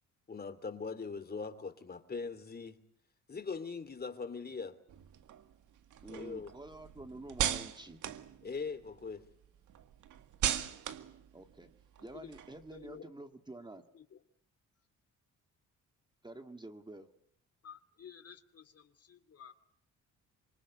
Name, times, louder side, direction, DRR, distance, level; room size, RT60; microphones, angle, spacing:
voice 1, 0.3-2.8 3.3-4.8 6.1-6.5 8.4-9.2, left 4 dB, 30° left, 2.9 m, -41 dB
sound 1, 4.9-9.1 9.4-12.9, right 10 dB, 80° right, 2.0 m, -39 dB
voice 2, 6.0-8.0 11.3-11.7 12.0-13.9 16.2-17.1, right 2 dB, 15° right, 1.9 m, -48 dB
voice 3, 12.7-13.1 13.9-14.0 17.6-19.5, left 8 dB, 55° left, 2.7 m, -52 dB
26.5 x 24.0 x 8.3 m
cardioid pair, 90°, 30 cm